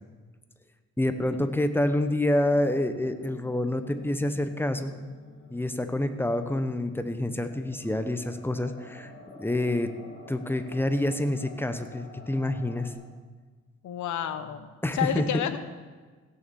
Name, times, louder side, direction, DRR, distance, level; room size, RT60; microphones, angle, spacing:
voice 1, 1.0-5.1 5.5-9.1 9.4-9.9 10.3-12.9 14.8-15.4, left 1 dB, 5° left, 9 dB, 1.1 m, -27 dB
sound 1, 2.5-12.9, left 2 dB, 35° left, 3.0 m, -48 dB
voice 2, 13.8-14.7 14.9-15.6, left 9 dB, 75° left, 11 dB, 1.2 m, -30 dB
16.5 x 7.0 x 7.1 m, 1.4 s
cardioid pair, 90°, 30 cm